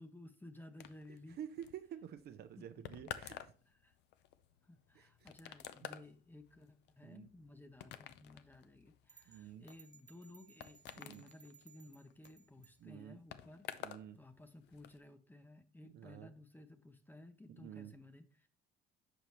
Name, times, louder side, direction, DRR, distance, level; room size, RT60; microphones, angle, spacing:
voice 1, 0.0-1.4 2.6-2.8 3.7-4.0 4.6-13.7 14.1-18.5, left 1 dB, 10° left, 9 dB, 0.8 m, -56 dB
sound 1, 0.8-14.1 14.3-15.0, left 11 dB, 65° left, 0.5 m, -51 dB
voice 2, 1.1-3.5 5.0-5.1 7.0-7.3 9.3-9.7 10.9-11.2 12.8-13.2 13.8-14.2 15.9-16.3 17.5-17.9, right 10 dB, 55° right, 10 dB, 0.6 m, -50 dB
sound 2, 9.1-12.8, right 7 dB, 20° right, 0.8 m, -64 dB
7.0 x 5.2 x 3.0 m, 0.41 s
supercardioid pair, 80°, 20 cm